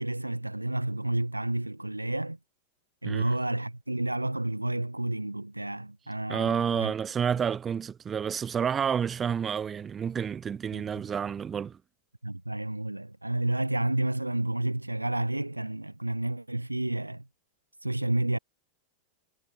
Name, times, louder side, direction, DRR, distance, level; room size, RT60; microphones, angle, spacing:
voice 1, 0.0-2.4 3.0-6.9 10.7-10.8 12.2-17.3 17.8-18.4, right 1 dB, 85° right, 5.8 m, -30 dB
voice 2, 6.3-11.8, right 7 dB, 20° right, 3.6 m, -29 dB
figure-of-eight pair, 90°, 0 cm